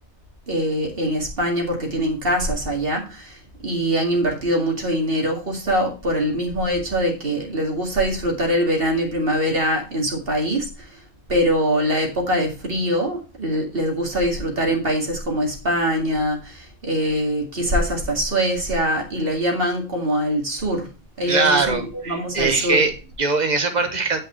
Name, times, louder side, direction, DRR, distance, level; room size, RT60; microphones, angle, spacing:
voice 1, 0.5-10.7 11.3-20.9 21.2-22.8, equal, 65° right, 1 dB, 2.4 m, -23 dB
voice 2, 21.3-24.2, right 4 dB, 45° right, 7 dB, 1.3 m, -21 dB
8.7 x 5.4 x 4.4 m, 0.33 s
omnidirectional pair, 1.0 m